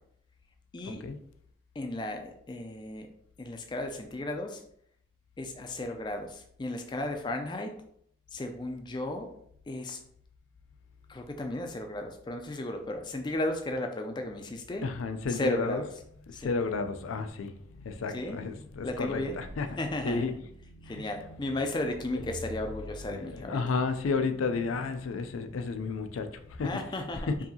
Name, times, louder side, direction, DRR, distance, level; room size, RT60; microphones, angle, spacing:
voice 1, 0.7-1.0 1.8-3.1 3.4-4.6 5.4-7.7 8.3-9.3 9.7-10.0 11.1-14.8 15.3-15.9 16.3-16.5 18.1-18.4 18.8-19.4 19.8-20.2 20.8-23.6 26.6-27.3, left 1 dB, 20° left, 0.3 m, -34 dB
voice 2, 14.8-15.8 16.3-19.8 20.0-20.3 20.6-21.6 22.1-22.2 23.1-26.7 27.3-27.4, left 4 dB, 90° left, 0.4 m, -32 dB
4.8 x 2.7 x 2.7 m
head